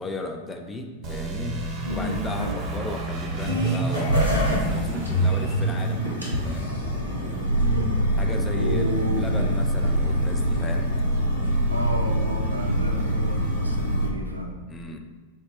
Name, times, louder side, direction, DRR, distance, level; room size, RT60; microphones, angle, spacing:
voice 1, 0.0-1.6 1.9-6.7 8.2-11.0 14.7-15.0, left 2 dB, 15° left, 3 dB, 0.4 m, -35 dB
sound 1, 1.0-7.6, right 2 dB, 35° right, 0.5 m, -31 dB
voice 2, 1.8-2.6 7.6-7.9 8.5-9.3 11.7-14.6, equal, 85° right, 2 dB, 0.4 m, -31 dB
sound 2, 3.2-14.1, equal, 85° left, 0.7 m, -24 dB
4.6 x 2.1 x 3.0 m, 1.3 s
figure-of-eight pair, 90°, 0 cm